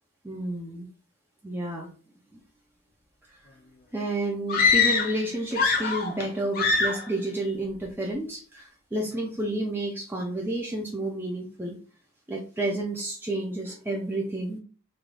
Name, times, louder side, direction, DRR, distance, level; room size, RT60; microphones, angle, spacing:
voice 1, 0.2-0.9 1.4-1.9 3.3-3.4 3.9-11.8 12.3-14.6, right 1 dB, 10° right, -1 dB, 0.4 m, -30 dB
sound 1, 4.5-5.2 5.5-6.3 6.5-7.1, left 5 dB, 40° left, 0.7 m, -23 dB
3.2 x 2.2 x 3.7 m, 0.40 s
head